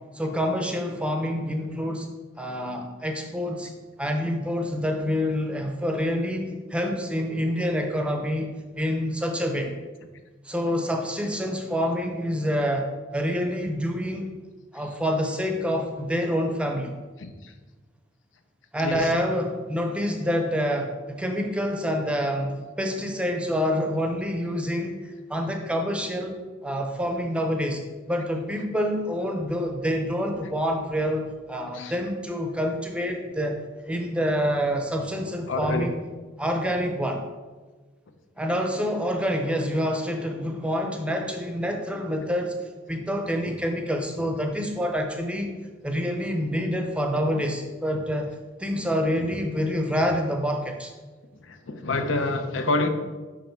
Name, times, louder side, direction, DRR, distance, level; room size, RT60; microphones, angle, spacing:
voice 1, 0.1-2.1 2.4-3.7 4.0-9.7 10.4-14.3 14.7-16.9 18.7-27.8 28.1-33.6 33.9-36.0 36.4-37.2 38.4-42.5 42.9-45.5 45.8-50.9, equal, 5° right, 3 dB, 0.6 m, -27 dB
voice 2, 18.8-19.1 31.7-31.9 35.5-35.9 51.4-52.9, left 2 dB, 85° left, 7 dB, 0.7 m, -27 dB
5.6 x 4.9 x 4.5 m, 1.3 s
head